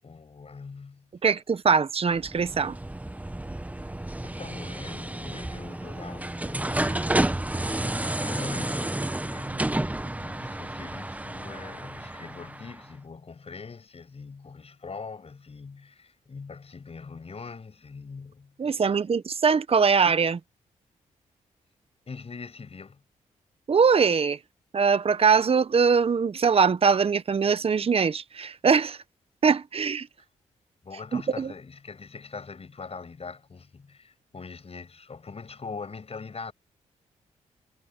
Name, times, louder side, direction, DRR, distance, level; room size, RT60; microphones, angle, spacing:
voice 1, 0.0-1.1 3.8-3.9 4.2-18.8 22.1-23.0 30.8-36.5, left 5 dB, 45° left, 7.2 m, -42 dB
voice 2, 1.2-2.7 18.6-20.4 23.7-24.4 24.7-29.0 29.4-30.1 31.1-31.5, right 5 dB, 45° right, 1.0 m, -22 dB
sound 1, 2.1-12.9, right 1 dB, 10° right, 1.1 m, -31 dB
cardioid pair, 60°, 14 cm